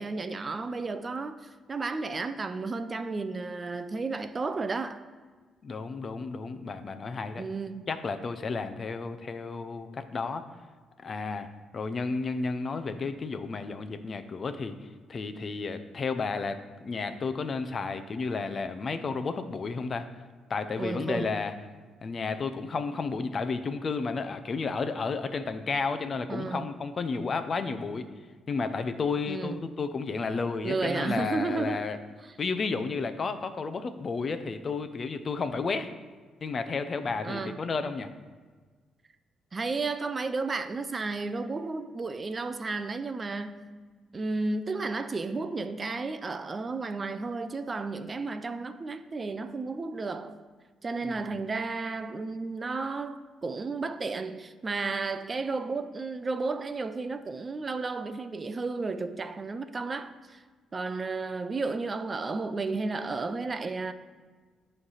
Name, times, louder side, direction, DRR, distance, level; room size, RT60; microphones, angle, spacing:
voice 1, 0.0-5.0 7.4-7.9 20.8-21.4 26.3-26.7 29.3-29.6 30.6-31.8 32.2-32.3 37.2-37.6 39.5-43.7 44.1-50.4 50.8-60.4 60.7-63.9, right 3 dB, 30° right, 0.4 m, -33 dB
voice 2, 5.6-7.4 7.9-10.4 11.0-11.5 11.7-14.7 15.1-20.1 20.5-21.5 22.0-28.1 28.5-32.0 32.4-35.9 36.4-38.1 51.0-51.5, left 4 dB, 40° left, 0.5 m, -32 dB
8.7 x 3.3 x 5.5 m
cardioid pair, 90°, 0 cm